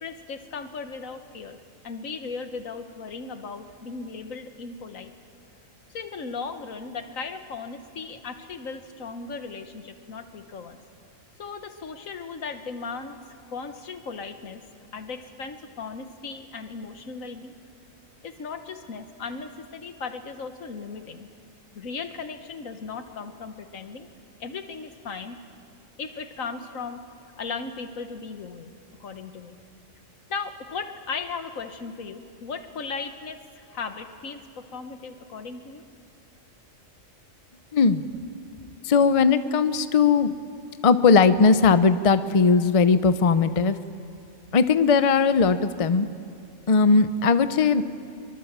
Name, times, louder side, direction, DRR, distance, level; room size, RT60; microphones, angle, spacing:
voice 1, 0.0-5.1 5.9-10.8 11.4-13.2 13.5-14.6 14.9-17.5 18.2-21.3 21.7-24.1 24.4-25.4 26.0-27.0 27.4-28.7 29.0-29.6 30.3-35.8, left 4 dB, 80° left, 8 dB, 1.7 m, -37 dB
voice 2, 37.7-38.1 38.8-40.3 40.8-43.8 44.5-46.1 46.7-47.8, left 5 dB, 35° left, 12 dB, 0.6 m, -19 dB
24.0 x 23.5 x 7.4 m, 2.4 s
omnidirectional pair, 1.4 m